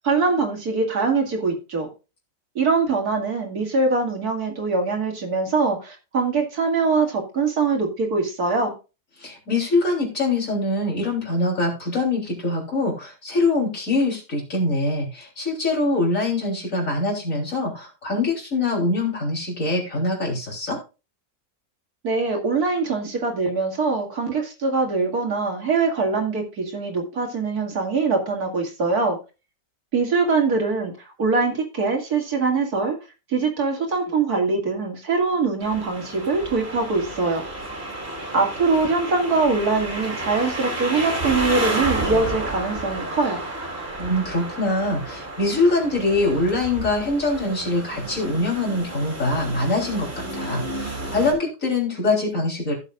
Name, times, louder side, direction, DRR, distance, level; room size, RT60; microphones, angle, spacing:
voice 1, 0.0-1.9 2.5-8.7 22.0-29.2 29.9-33.0 33.3-37.4 38.3-43.4, right 4 dB, 85° right, 2 dB, 2.8 m, -23 dB
voice 2, 9.2-20.8 44.0-52.7, left 2 dB, 60° left, 0 dB, 3.9 m, -23 dB
sound 1, 35.6-51.3, right 1 dB, 40° right, 3.3 m, -31 dB
16.0 x 7.3 x 2.4 m, 0.30 s
omnidirectional pair, 1.6 m